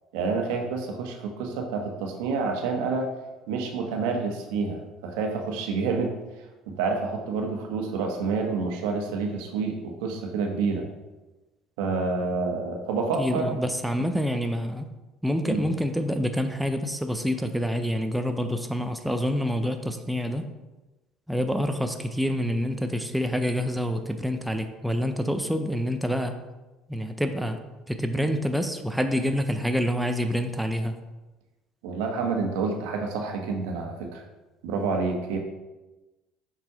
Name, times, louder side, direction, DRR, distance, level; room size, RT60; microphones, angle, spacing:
voice 1, 0.1-3.1 3.5-6.1 6.7-10.9 11.8-13.5 15.4-15.6 31.8-34.2 34.6-35.4, right 4 dB, 85° right, 2 dB, 1.1 m, -28 dB
voice 2, 13.2-14.9 15.2-20.4 21.3-26.4 26.9-27.6 27.9-31.0, equal, ahead, 6 dB, 0.5 m, -27 dB
6.0 x 4.2 x 4.8 m, 1.1 s
supercardioid pair, 100°, 0 cm